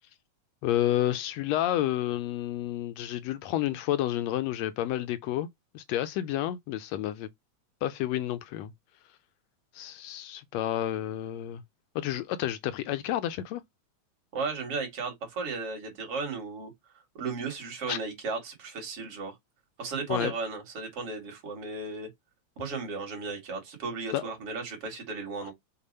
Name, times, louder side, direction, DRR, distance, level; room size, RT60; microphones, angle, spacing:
voice 1, 0.6-5.5 5.7-7.3 7.8-8.7 9.7-11.6 12.0-13.6 17.9-18.0 20.1-20.3 24.1-24.2, left 13 dB, 80° left, 1.6 m, -30 dB
voice 2, 14.3-16.7 17.1-19.3 19.8-22.1 22.6-25.5, right 4 dB, 50° right, 3.1 m, -35 dB
6.7 x 2.6 x 5.4 m
omnidirectional pair, 3.4 m